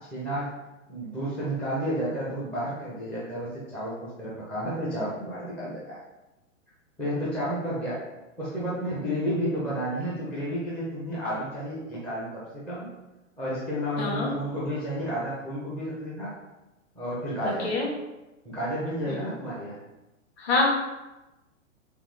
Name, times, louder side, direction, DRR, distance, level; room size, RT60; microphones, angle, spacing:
voice 1, 0.1-0.5 0.9-6.0 7.0-8.0 8.4-12.9 13.4-16.3 16.9-17.7 18.4-19.8, equal, 5° left, -9 dB, 0.4 m, -31 dB
voice 2, 14.0-14.3 17.6-17.9 19.1-19.2 20.4-20.7, left 3 dB, 50° left, -1 dB, 1.3 m, -25 dB
3.5 x 3.4 x 3.1 m, 1.0 s
hypercardioid pair, 120°, 41 cm